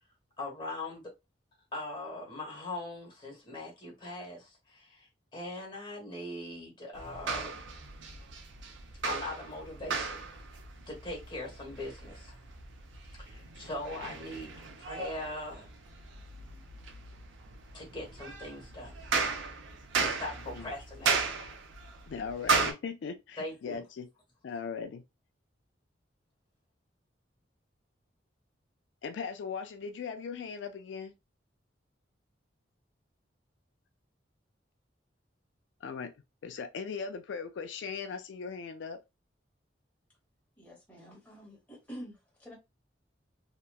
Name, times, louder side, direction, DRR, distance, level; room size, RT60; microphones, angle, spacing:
voice 1, 0.4-1.1 1.7-7.6 9.0-10.3 10.9-12.3 13.2-15.7 17.7-19.0 20.0-21.2 23.4-23.8, left 2 dB, 25° left, 1.2 m, -41 dB
sound 1, 7.0-22.7, right 4 dB, 85° right, 0.5 m, -36 dB
voice 2, 22.1-24.1 24.4-25.0 29.0-31.1 35.8-36.1 36.4-39.0, left 5 dB, 80° left, 0.3 m, -39 dB
voice 3, 40.6-42.5, equal, 10° left, 1.1 m, -47 dB
2.9 x 2.2 x 2.3 m
head